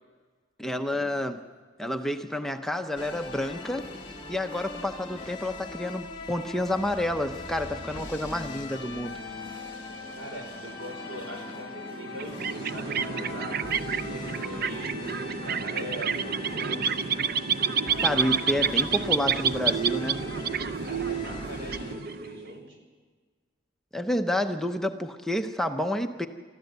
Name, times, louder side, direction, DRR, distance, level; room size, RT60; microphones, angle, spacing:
voice 1, 0.6-1.4 1.8-3.9 4.3-9.1 18.0-20.2 23.9-26.3, left 1 dB, ahead, 5 dB, 0.7 m, -29 dB
sound 1, 3.0-22.0, left 3 dB, 30° left, 2.3 m, -40 dB
voice 2, 10.2-13.7 14.1-17.0 20.7-22.8, right 1 dB, 80° right, 3 dB, 5.4 m, -41 dB
sound 2, 12.1-22.5, right 6 dB, 55° right, 0.6 m, -29 dB
24.0 x 14.0 x 8.1 m, 1.5 s
head